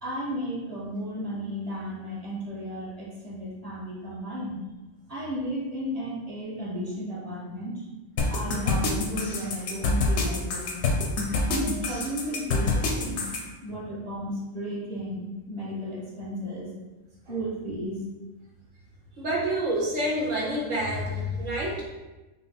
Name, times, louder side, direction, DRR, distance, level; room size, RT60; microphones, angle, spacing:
voice 1, 0.0-4.6 5.1-7.9 8.3-10.9 11.5-13.3 13.6-16.7 17.3-18.0, equal, 30° right, -7 dB, 1.2 m, -34 dB
sound 1, 8.2-13.4, left 3 dB, 60° left, 0.9 m, -26 dB
voice 2, 19.2-21.8, equal, 60° right, -2 dB, 1.4 m, -28 dB
5.5 x 2.1 x 4.1 m, 1.1 s
omnidirectional pair, 1.5 m